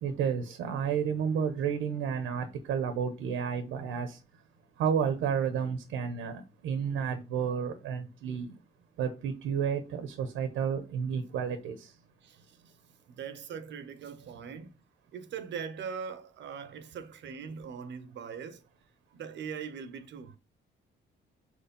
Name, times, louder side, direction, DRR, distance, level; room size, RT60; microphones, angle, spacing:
voice 1, 0.0-4.2 4.8-8.5 9.0-11.9, right 7 dB, 90° right, 0.9 m, -31 dB
voice 2, 13.1-14.7 15.1-18.6 19.1-20.4, right 6 dB, 65° right, 0.8 m, -41 dB
4.8 x 4.5 x 5.3 m
cardioid pair, 90°, 20 cm